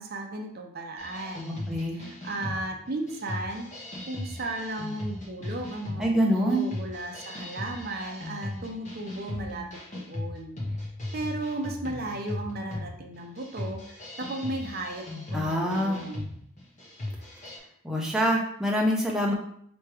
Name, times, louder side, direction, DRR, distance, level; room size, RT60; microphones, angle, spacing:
voice 1, 0.0-1.6 1.9-3.7 4.1-10.6 11.1-16.3, right 2 dB, 45° right, 3 dB, 0.6 m, -35 dB
sound 1, 1.0-17.6, left 1 dB, 35° left, 1.0 m, -38 dB
voice 2, 1.5-2.0 6.0-6.6 15.3-16.0 17.8-19.3, equal, ahead, -3 dB, 0.7 m, -25 dB
3.3 x 3.1 x 4.7 m, 0.67 s
head